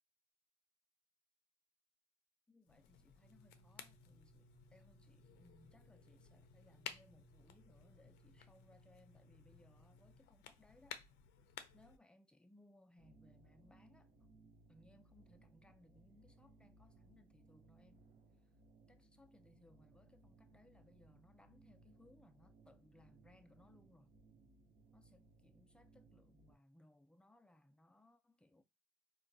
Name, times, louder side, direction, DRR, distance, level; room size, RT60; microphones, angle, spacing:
voice 1, 2.5-11.0 11.7-14.3 14.7-18.1 18.9-24.1 24.9-28.6, left 1 dB, 5° left, 0.3 m, -67 dB
sound 1, 2.6-12.0, left 9 dB, 85° left, 0.4 m, -56 dB
sound 2, 3.2-10.2, right 1 dB, 90° right, 0.9 m, -67 dB
sound 3, 13.0-26.5, right 3 dB, 55° right, 0.7 m, -66 dB
3.8 x 2.2 x 2.5 m
cardioid pair, 110°, 17 cm